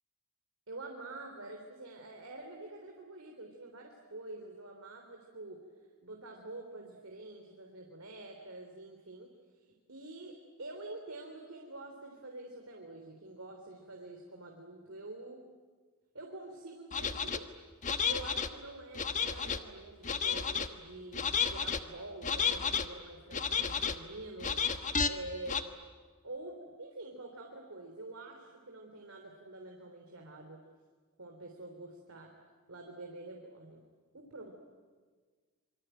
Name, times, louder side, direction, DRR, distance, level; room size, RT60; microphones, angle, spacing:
voice 1, 0.7-5.6 6.0-9.6 9.9-15.4 16.1-17.5 18.0-24.6 25.0-25.6 26.2-30.6 31.2-32.3 32.7-33.8 34.1-34.5, right 2 dB, 70° right, 1 dB, 3.5 m, -47 dB
sound 1, 16.9-17.4 17.8-18.5 19.0-19.6 20.0-20.7 21.1-21.8 22.2-22.9 23.3-24.0 24.4-25.1 25.5-25.6, left 6 dB, 35° left, 1.3 m, -32 dB
26.5 x 24.5 x 9.1 m, 1.5 s
head